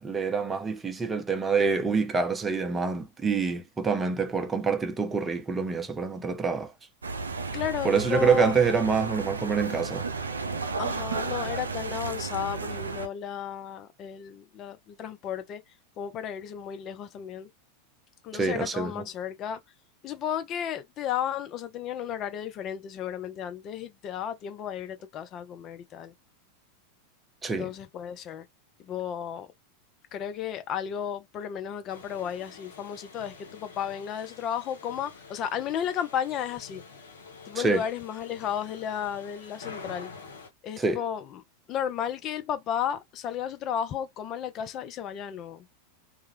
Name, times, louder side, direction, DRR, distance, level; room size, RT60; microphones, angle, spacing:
voice 1, 0.0-6.7 7.8-10.1 18.3-19.0 27.4-27.7 37.5-37.8 40.8-41.0, right 5 dB, 20° right, 0.5 m, -26 dB
sound 1, 7.0-13.1, right 4 dB, 85° right, 0.3 m, -33 dB
voice 2, 7.5-9.3 10.8-15.6 16.0-17.5 18.2-19.6 20.0-26.1 27.5-28.5 28.8-29.5 30.1-36.8 37.5-40.1 40.6-41.4 41.7-45.7, left 9 dB, 40° left, 0.4 m, -33 dB
sound 2, 31.9-40.5, left 4 dB, 75° left, 0.7 m, -47 dB
2.3 x 2.1 x 3.0 m
figure-of-eight pair, 90°, 0 cm